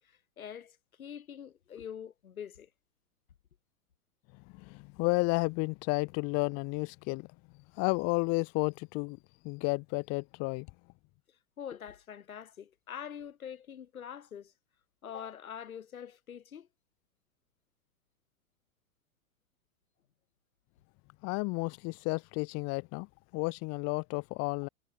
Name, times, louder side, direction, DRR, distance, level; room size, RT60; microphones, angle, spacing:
voice 1, 0.0-2.7 11.3-14.5 15.0-16.7, left 8 dB, 85° left, 7.4 m, -45 dB
voice 2, 4.5-7.3 7.7-9.2 9.4-10.7 21.2-23.1 23.3-24.7, left 28 dB, 35° left, 0.9 m, -32 dB
hypercardioid pair, 120°, 41 cm